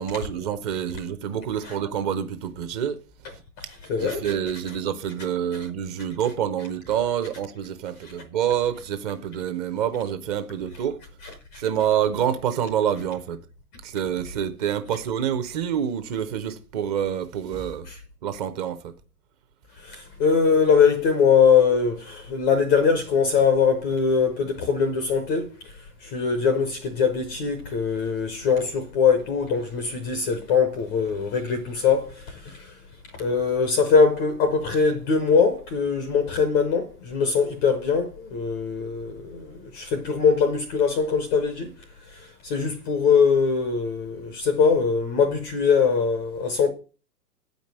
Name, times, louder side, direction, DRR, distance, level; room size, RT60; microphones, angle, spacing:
voice 1, 0.0-3.0 4.0-11.0 11.6-13.4 13.8-17.9 18.2-18.8, right 9 dB, 25° right, 0.8 m, -27 dB
voice 2, 3.9-4.3 11.5-11.6 19.9-25.5 26.0-32.7 33.2-41.7 42.4-46.7, left 5 dB, 15° left, 0.5 m, -22 dB
8.7 x 5.2 x 7.2 m
figure-of-eight pair, 110°, 47 cm